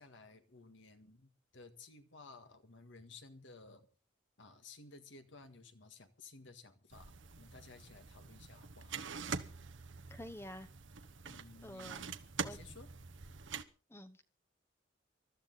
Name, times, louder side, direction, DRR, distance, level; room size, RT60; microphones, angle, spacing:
voice 1, 0.0-3.9 4.4-9.0 11.2-12.9, left 3 dB, 70° left, 1.7 m, -56 dB
sound 1, 6.9-13.6, right 5 dB, 75° right, 1.1 m, -45 dB
voice 2, 10.1-10.7 11.6-12.0 12.4-12.6 13.9-14.2, left 1 dB, 15° left, 0.9 m, -48 dB
20.5 x 13.0 x 4.1 m
head